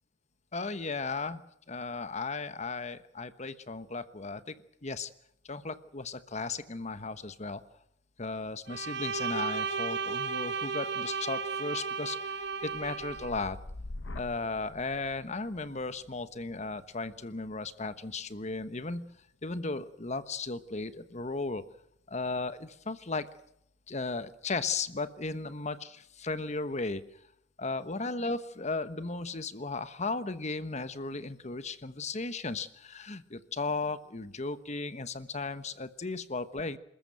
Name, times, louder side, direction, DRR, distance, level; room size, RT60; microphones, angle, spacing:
voice 1, 0.5-4.5 4.8-5.1 5.4-7.6 8.2-13.6 14.1-19.1 19.4-21.7 22.1-23.3 23.9-27.1 27.6-36.8, left 3 dB, 40° left, 13 dB, 1.2 m, -36 dB
Bowed string instrument, 8.7-13.3, right 5 dB, 65° right, 1.3 m, -34 dB
sound 1, 12.4-20.5 20.9-21.4, left 2 dB, 90° left, 1.1 m, -48 dB
27.0 x 14.0 x 9.1 m, 0.76 s
head